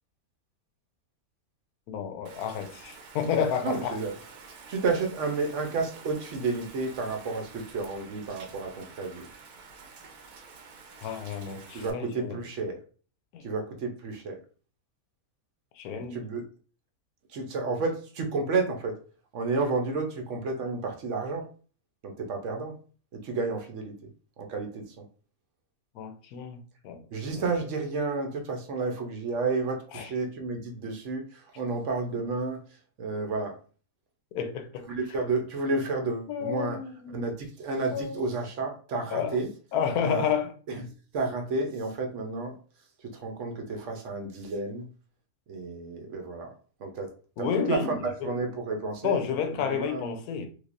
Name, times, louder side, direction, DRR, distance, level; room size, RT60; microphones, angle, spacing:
voice 1, 1.9-4.0 11.0-12.4 13.3-13.5 15.8-16.2 25.9-26.6 26.8-27.0 27.3-27.4 29.9-30.1 34.3-34.9 36.3-37.3 37.9-38.3 39.1-39.4 39.7-40.5 47.4-48.3 49.0-50.5, left 7 dB, 80° left, 1.1 m, -30 dB
Rain, 2.3-11.9, right 4 dB, 85° right, 1.2 m, -49 dB
voice 2, 3.6-4.2 4.7-9.3 11.7-12.8 13.4-14.4 15.9-16.4 17.3-19.0 19.3-21.5 22.0-22.8 23.1-23.9 24.4-25.0 27.1-32.6 33.0-33.6 34.9-36.8 37.1-39.5 40.0-40.3 40.7-40.8 41.1-42.6 43.1-44.9 45.5-46.5 46.8-47.1 47.4-49.2 49.5-50.1, right 3 dB, 60° right, 0.9 m, -31 dB
3.2 x 3.2 x 2.5 m
omnidirectional pair, 1.6 m